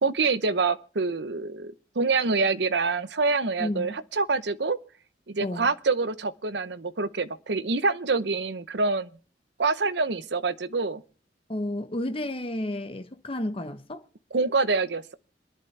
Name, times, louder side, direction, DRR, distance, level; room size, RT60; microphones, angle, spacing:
voice 1, 0.0-4.8 5.3-9.1 9.6-11.0 14.3-15.1, right 4 dB, 65° right, 0.8 m, -26 dB
voice 2, 3.6-3.9 5.4-5.7 11.5-14.0, left 1 dB, 30° left, 0.9 m, -31 dB
26.5 x 11.0 x 3.3 m
head